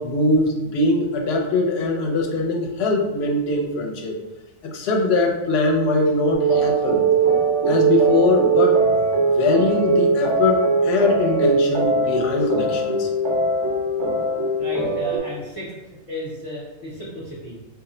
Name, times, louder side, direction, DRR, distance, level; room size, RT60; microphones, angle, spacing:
voice 1, 0.0-4.1 4.6-7.0 7.6-8.8 9.3-13.1, left 2 dB, 75° left, 2 dB, 0.8 m, -21 dB
sound 1, 6.3-15.2, right 4 dB, 90° right, 0.9 m, -20 dB
voice 2, 14.6-15.7 16.1-17.6, left 1 dB, 35° left, -8 dB, 0.6 m, -34 dB
2.4 x 2.0 x 3.7 m, 1.0 s
omnidirectional pair, 1.1 m